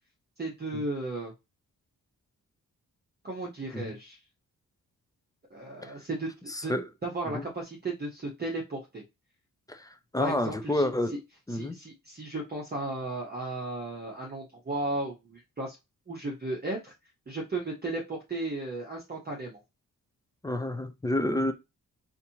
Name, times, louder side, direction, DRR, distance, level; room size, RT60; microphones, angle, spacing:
voice 1, 0.4-1.3 3.2-4.2 5.5-6.3 6.6-6.7 7.0-9.0 10.2-10.8 11.1-11.2 11.5-15.8 16.1-16.9 17.3-19.6, right 2 dB, 30° right, 0.8 m, -35 dB
voice 2, 10.1-11.2 11.5-11.8 20.4-21.5, left 1 dB, 10° left, 0.4 m, -28 dB
4.1 x 2.6 x 2.8 m
wide cardioid pair, 160°, 35 cm